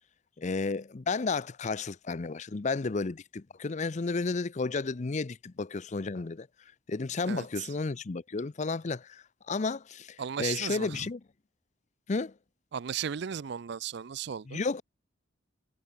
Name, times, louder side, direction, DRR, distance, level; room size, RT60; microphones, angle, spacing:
voice 1, 0.4-6.5 6.9-11.2 12.1-12.3 14.5-14.8, left 4 dB, 35° left, 0.5 m, -32 dB
voice 2, 7.2-7.7 10.2-11.1 12.7-14.6, right 8 dB, 60° right, 0.4 m, -36 dB
head